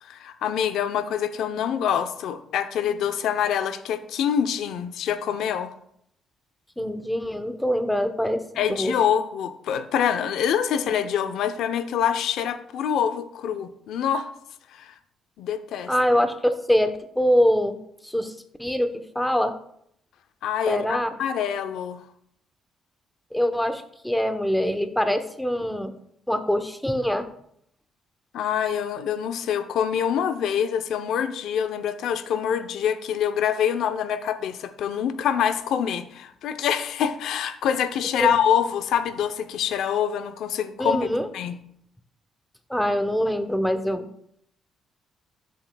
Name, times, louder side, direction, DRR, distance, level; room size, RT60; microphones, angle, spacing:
voice 1, 0.0-5.7 8.6-14.3 14.7-14.9 15.4-15.9 20.4-22.0 28.3-41.0 41.3-41.6, left 8 dB, 80° left, 10 dB, 0.6 m, -25 dB
voice 2, 6.8-8.9 15.9-17.8 18.0-18.3 18.6-19.6 20.7-21.1 23.3-25.9 26.3-27.3 38.2-38.3 40.8-41.3 42.7-44.1, equal, 5° left, 8 dB, 0.9 m, -24 dB
13.5 x 7.6 x 2.3 m, 0.71 s
cardioid pair, 90°, 0 cm